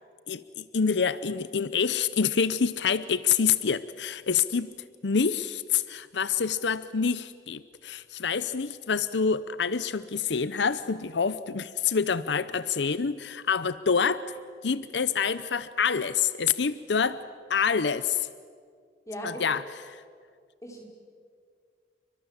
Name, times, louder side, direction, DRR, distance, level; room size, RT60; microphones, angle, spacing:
voice 1, 0.3-4.7 5.0-14.3 14.6-17.2 17.5-18.3 19.2-20.0, left 6 dB, 85° left, 15 dB, 0.7 m, -27 dB
voice 2, 19.1-19.4 20.6-20.8, equal, 15° left, 0 dB, 5.0 m, -37 dB
29.5 x 23.5 x 7.5 m, 2.1 s
head